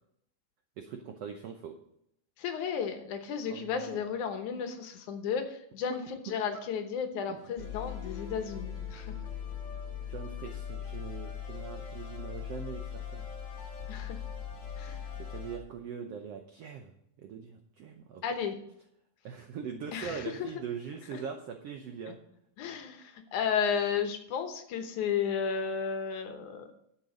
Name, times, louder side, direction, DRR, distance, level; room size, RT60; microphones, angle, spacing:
voice 1, 0.8-1.8 3.5-4.0 5.9-6.0 6.5-6.6 7.3-7.4 10.0-13.3 15.2-16.9 17.2-18.2 19.2-22.2, right 7 dB, 80° right, 5 dB, 1.4 m, -41 dB
voice 2, 2.4-9.2 13.9-14.2 14.8-15.0 18.2-18.6 19.9-20.3 21.1-21.2 22.6-26.7, left 7 dB, 70° left, 6 dB, 2.3 m, -33 dB
sound 1, 7.6-15.6, left 8 dB, 35° left, 2.8 m, -40 dB
11.5 x 7.2 x 5.1 m, 0.74 s
omnidirectional pair, 3.9 m